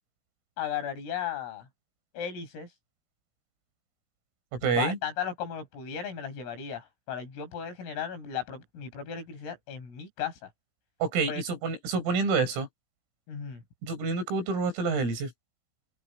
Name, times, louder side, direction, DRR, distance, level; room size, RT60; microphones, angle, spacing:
voice 1, 0.6-1.7 2.1-2.7 4.6-10.5 11.3-11.4 13.3-13.6, left 8 dB, 75° left, 8.1 m, -35 dB
voice 2, 4.5-5.0 11.0-12.7 13.8-15.3, right 4 dB, 75° right, 7.5 m, -28 dB
omnidirectional pair, 6.0 m